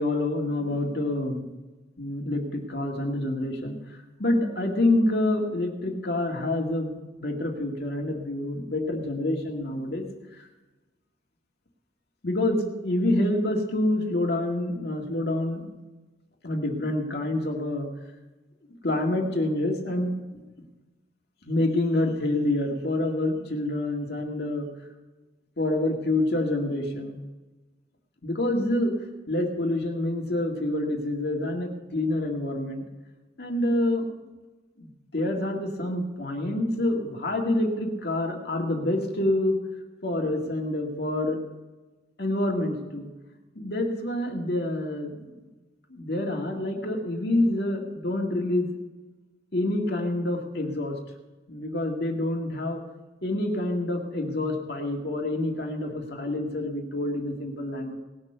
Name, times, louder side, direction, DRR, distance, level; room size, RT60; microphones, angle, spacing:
voice 1, 0.0-1.5 2.0-10.0 10.4-10.5 12.2-15.7 16.4-17.9 18.8-20.4 21.4-24.7 25.6-27.2 28.2-28.9 29.3-32.8 33.4-34.1 34.8-39.6 40.0-41.4 42.2-43.1 43.6-45.4 45.9-48.7 49.5-51.0 51.5-52.8 53.2-57.9, left 1 dB, 60° left, 1 dB, 2.0 m, -27 dB
19.0 x 6.7 x 6.8 m, 1.2 s
head